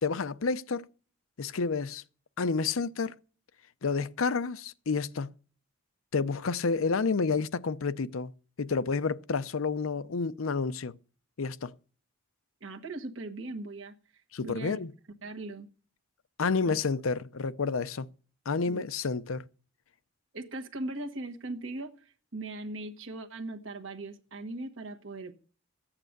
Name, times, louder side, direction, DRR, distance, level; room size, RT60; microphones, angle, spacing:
voice 1, 0.0-0.9 1.4-2.0 2.4-3.1 3.8-5.3 6.1-8.3 8.6-10.9 11.4-11.7 14.3-14.9 16.4-18.1 18.5-19.4, left 4 dB, 90° left, 0.6 m, -29 dB
voice 2, 12.6-14.8 15.2-15.7 16.6-16.8 18.6-18.8 20.3-25.3, right 2 dB, 70° right, 1.3 m, -39 dB
14.5 x 8.8 x 6.6 m
head